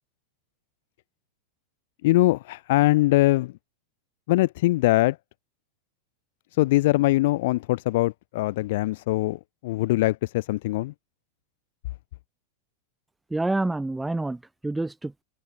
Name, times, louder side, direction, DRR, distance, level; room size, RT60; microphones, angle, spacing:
voice 1, 2.0-3.5 4.3-5.2 6.6-10.9, left 18 dB, 50° left, 0.7 m, -22 dB
voice 2, 13.3-15.2, right 2 dB, 5° right, 1.5 m, -28 dB
figure-of-eight pair, 90°, 0 cm